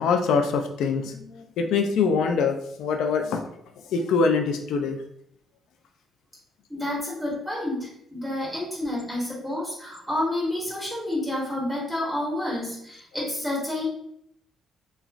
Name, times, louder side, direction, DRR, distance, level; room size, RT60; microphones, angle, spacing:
voice 1, 0.0-3.4 3.9-5.0, left 5 dB, 80° left, 5 dB, 0.3 m, -24 dB
voice 2, 6.7-13.8, left 1 dB, 10° right, -6 dB, 1.2 m, -29 dB
3.0 x 2.3 x 2.5 m, 0.71 s
cardioid pair, 90°, 0 cm